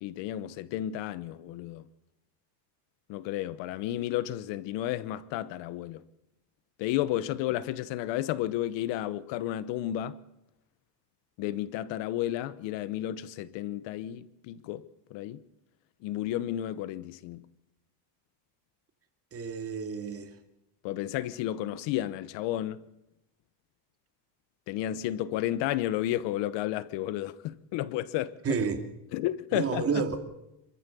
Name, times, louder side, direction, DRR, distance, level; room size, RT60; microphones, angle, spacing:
voice 1, 0.0-1.8 3.1-6.0 6.8-10.2 11.4-15.4 16.0-17.4 20.8-22.9 24.7-28.6 29.1-30.0, left 13 dB, 65° left, 1.1 m, -32 dB
voice 2, 19.3-20.3 28.4-28.8 29.5-30.2, right 6 dB, 30° right, 2.6 m, -30 dB
26.5 x 14.0 x 6.9 m
cardioid pair, 135°, 47 cm